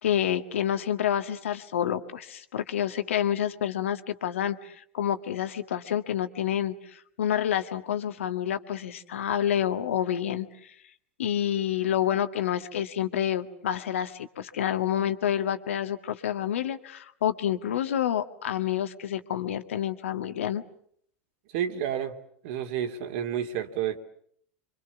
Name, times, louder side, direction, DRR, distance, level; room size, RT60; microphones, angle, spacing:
voice 1, 0.0-10.7 11.2-20.6, left 10 dB, 85° left, 9 dB, 1.8 m, -28 dB
voice 2, 21.5-22.2 22.4-24.0, right 9 dB, 65° right, 7 dB, 2.8 m, -30 dB
28.5 x 25.0 x 7.2 m, 0.66 s
hypercardioid pair, 95°, 7 cm